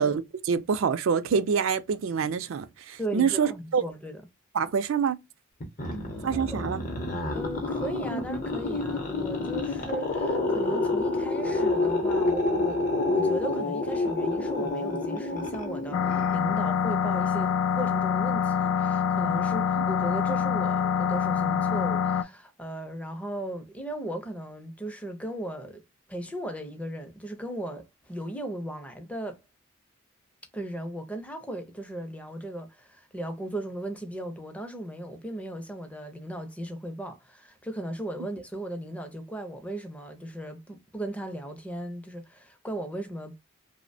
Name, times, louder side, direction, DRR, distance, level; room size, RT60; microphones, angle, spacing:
voice 1, 0.0-3.8 4.5-5.2 6.2-6.8, right 6 dB, 75° right, 0.4 m, -26 dB
voice 2, 3.0-4.2 5.9-6.6 7.3-25.8 26.1-29.4 30.5-43.4, right 1 dB, 5° left, 0.4 m, -37 dB
sound 1, 5.6-16.7, left 2 dB, 40° left, 0.7 m, -28 dB
sound 2, 15.9-22.2, left 7 dB, 80° left, 0.3 m, -25 dB
2.8 x 2.1 x 2.5 m
head